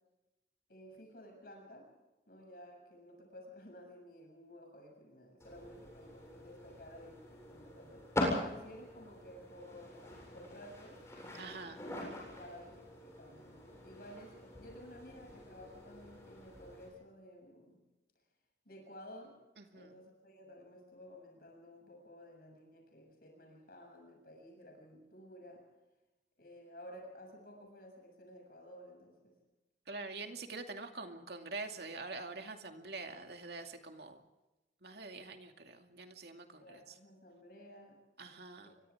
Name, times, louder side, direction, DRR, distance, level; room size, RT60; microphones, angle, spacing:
voice 1, 0.7-1.9 2.3-8.1 8.4-11.0 11.7-17.8 18.7-19.4 19.7-25.7 26.4-29.4 36.6-38.0 38.6-38.9, equal, 55° left, 1 dB, 7.4 m, -54 dB
sound 1, 5.4-16.9, left 1 dB, 15° left, 7.8 m, -43 dB
voice 2, 11.4-11.8 19.6-19.9 29.9-34.2 34.8-36.9 38.2-38.7, right 3 dB, 65° right, 4 dB, 2.5 m, -45 dB
29.5 x 24.0 x 3.7 m, 1.0 s
head